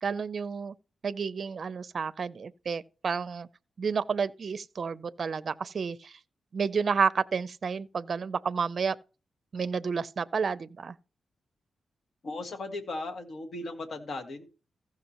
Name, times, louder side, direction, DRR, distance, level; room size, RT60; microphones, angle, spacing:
voice 1, 0.0-0.7 1.0-3.5 3.8-6.1 6.5-9.0 9.5-10.9, right 5 dB, 55° right, 0.5 m, -30 dB
voice 2, 12.2-14.5, left 2 dB, 65° left, 1.7 m, -37 dB
15.5 x 5.8 x 3.0 m
cardioid pair, 90°, 0 cm